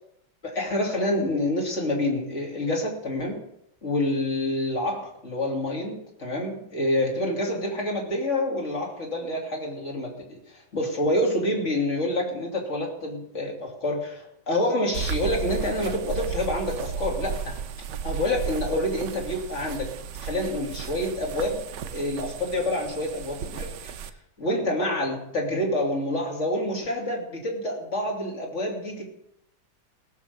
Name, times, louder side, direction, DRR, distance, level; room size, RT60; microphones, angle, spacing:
voice 1, 0.4-3.4 3.8-17.6 18.0-19.9 20.2-21.6 21.9-24.1 24.4-29.0, left 1 dB, 35° left, 0 dB, 3.2 m, -27 dB
sound 1, 14.9-24.1, right 7 dB, 70° right, 1.3 m, -34 dB
17.5 x 7.4 x 6.8 m, 0.80 s
omnidirectional pair, 2.1 m